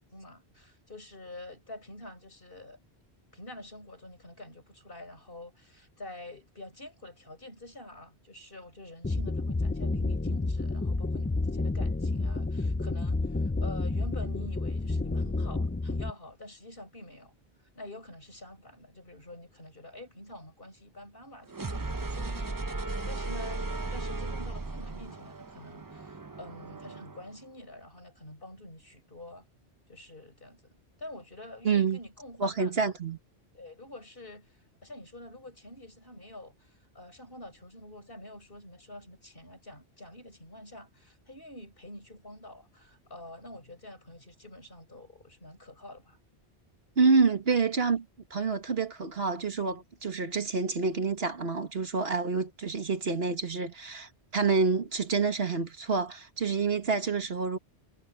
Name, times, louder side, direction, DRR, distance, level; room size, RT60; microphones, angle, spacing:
voice 1, 0.0-2.8 3.3-17.3 17.8-23.7 23.9-29.5 29.9-32.9 33.5-46.2, left 1 dB, 55° left, 7.1 m, -47 dB
sound 1, 9.0-16.1, left 3 dB, 20° left, 0.3 m, -30 dB
sound 2, 21.5-27.3, right 3 dB, 20° right, 0.7 m, -36 dB
voice 2, 31.6-32.0 32.4-33.2 47.0-48.1 48.3-57.6, right 4 dB, 65° right, 1.9 m, -28 dB
omnidirectional pair, 1.1 m